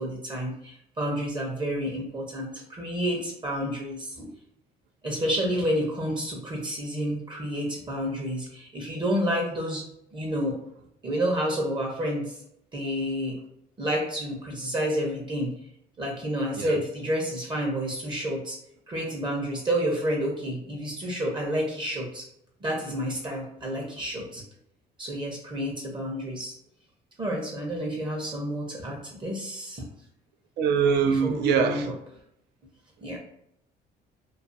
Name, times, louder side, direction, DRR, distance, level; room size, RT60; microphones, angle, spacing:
voice 1, 0.0-4.3 5.0-9.8 10.1-10.6 11.0-12.4 12.7-13.4 13.8-15.5 16.0-18.6 18.9-22.2 22.6-24.4 25.0-26.5 27.2-29.9 31.0-31.9 33.0-33.2, equal, 30° right, -1 dB, 0.7 m, -29 dB
voice 2, 30.6-31.9, right 6 dB, 75° right, 5 dB, 0.4 m, -23 dB
2.4 x 2.3 x 2.6 m, 0.74 s
cardioid pair, 110°, 17 cm